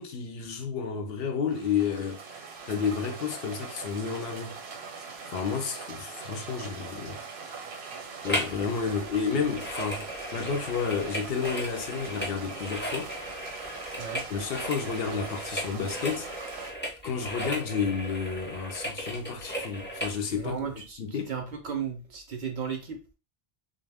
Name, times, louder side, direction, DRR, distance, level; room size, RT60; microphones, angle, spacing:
voice 1, 0.0-2.2 2.7-4.5 5.3-7.2 8.2-13.1 14.3-16.3 17.0-20.6 21.0-21.3, left 6 dB, 70° left, 0.8 m, -31 dB
sound 1, 1.5-16.7, right 5 dB, 85° right, 0.9 m, -42 dB
sound 2, 8.3-8.6 8.9-20.2 20.7-20.8, equal, 15° left, 0.6 m, -36 dB
voice 2, 20.4-21.0 21.3-23.0, right 6 dB, 55° right, 0.6 m, -34 dB
2.4 x 2.1 x 3.3 m
omnidirectional pair, 1.1 m